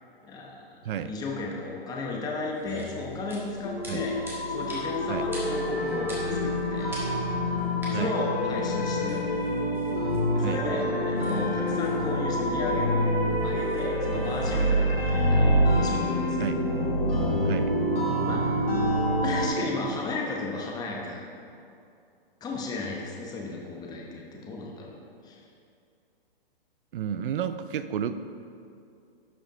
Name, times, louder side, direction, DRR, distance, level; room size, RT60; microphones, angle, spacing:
voice 1, 0.2-4.2 4.5-6.9 7.9-9.2 10.3-13.1 13.4-15.5 15.8-16.6 18.2-18.5 19.2-21.2 22.4-24.9 25.2-25.4, left 3 dB, 15° left, -1 dB, 0.9 m, -34 dB
voice 2, 0.8-1.1 3.9-4.0 5.1-5.3 7.9-8.1 10.4-10.6 14.1-14.2 14.9-15.0 16.4-16.7 17.4-17.7 26.9-28.3, right 8 dB, 60° right, 12 dB, 0.5 m, -32 dB
sound 1, 2.4-14.7, equal, 10° right, 1.6 m, -48 dB
sound 2, 2.7-19.5, equal, 75° left, 1.9 m, -26 dB
11.0 x 4.9 x 3.8 m, 2.5 s
hypercardioid pair, 135°, 29 cm